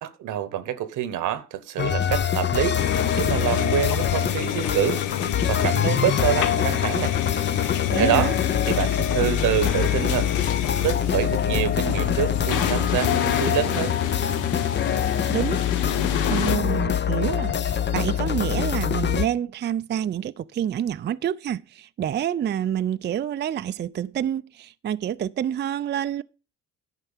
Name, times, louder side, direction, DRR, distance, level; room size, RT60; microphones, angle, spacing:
voice 1, 0.0-2.8 3.1-5.0 5.5-7.2 8.0-8.3 8.7-10.3 10.8-14.0, right 11 dB, 85° right, 1.1 m, -26 dB
sound 1, 1.8-19.3, left 9 dB, 35° left, 0.6 m, -25 dB
sound 2, 2.8-16.6, left 10 dB, 90° left, 1.0 m, -28 dB
voice 2, 7.9-8.4 15.3-15.6 16.3-26.2, right 10 dB, 35° right, 0.4 m, -28 dB
11.0 x 4.5 x 7.2 m
cardioid pair, 90°, 30 cm